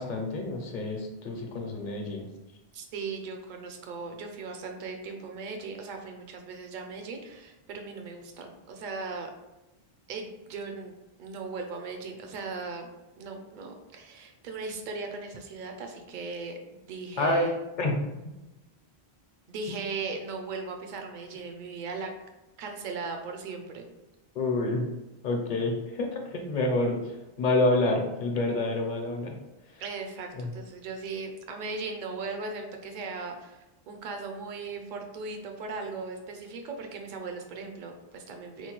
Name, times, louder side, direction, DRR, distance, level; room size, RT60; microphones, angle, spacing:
voice 1, 0.0-2.3 17.2-17.5 17.8-18.0 24.3-24.9 25.2-29.4 29.7-29.8 30.4-30.5, left 2 dB, 50° left, 2 dB, 0.7 m, -28 dB
voice 2, 2.7-9.3 10.1-10.9 11.2-12.9 13.2-17.5 19.5-22.1 22.6-23.8 29.8-38.7, right 4 dB, 55° right, 4 dB, 0.6 m, -38 dB
4.4 x 2.2 x 2.9 m, 1.0 s
omnidirectional pair, 1.1 m